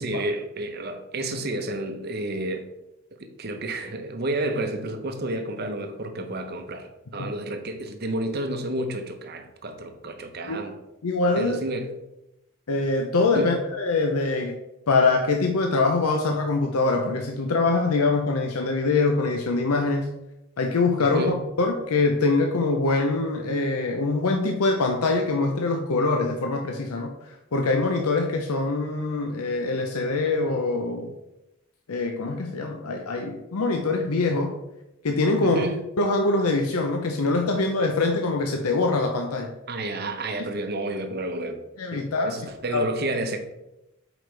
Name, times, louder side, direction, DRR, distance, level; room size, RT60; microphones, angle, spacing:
voice 1, 0.0-2.7 3.2-10.8 11.3-11.9 13.3-13.6 21.0-21.4 35.4-35.8 39.7-41.6 41.9-43.4, right 1 dB, 45° right, 6 dB, 0.8 m, -30 dB
voice 2, 11.0-11.6 12.7-14.5 14.9-20.1 20.6-31.1 31.9-34.5 35.0-35.6 36.0-39.5 40.4-40.5 41.8-42.4 42.7-42.8, left 3 dB, 80° left, 3 dB, 0.7 m, -24 dB
7.7 x 5.0 x 3.3 m, 0.92 s
head